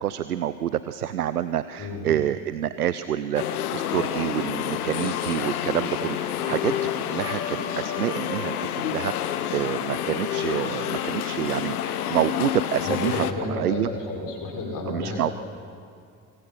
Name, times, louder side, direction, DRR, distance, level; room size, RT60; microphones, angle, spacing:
voice 1, 0.0-6.7 7.0-13.9 14.9-15.3, right 11 dB, 85° right, 14 dB, 0.6 m, -28 dB
voice 2, 1.8-2.1 12.8-15.3, left 2 dB, 45° left, 0 dB, 5.2 m, -31 dB
sound 1, 3.3-13.3, left 10 dB, 75° left, 1.1 m, -29 dB
24.0 x 23.5 x 5.8 m, 2.3 s
figure-of-eight pair, 50°, 45 cm